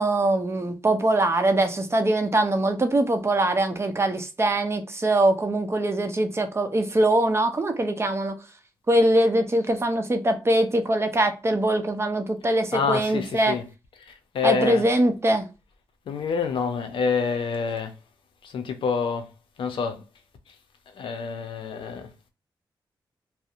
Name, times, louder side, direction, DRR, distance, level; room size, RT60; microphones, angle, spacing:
voice 1, 0.0-8.4 8.9-13.6 14.4-15.5, right 1 dB, 30° right, 0.6 m, -22 dB
voice 2, 12.4-13.7 14.0-14.9 16.1-18.0 18.4-19.3 19.6-20.0 20.5-20.6 20.9-22.1, left 5 dB, 90° left, 0.5 m, -28 dB
2.7 x 2.0 x 2.4 m
cardioid pair, 60°, 8 cm